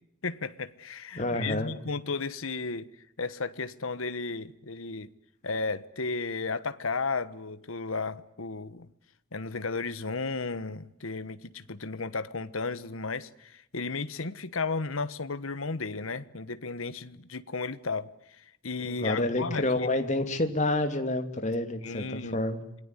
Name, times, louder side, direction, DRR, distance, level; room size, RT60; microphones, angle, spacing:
voice 1, 0.2-2.9 3.2-5.1 5.4-8.9 9.3-20.1 21.8-22.4, left 4 dB, 75° left, 1.3 m, -34 dB
voice 2, 1.2-1.7 18.8-22.6, left 2 dB, 35° left, 2.8 m, -28 dB
27.5 x 21.0 x 9.7 m
head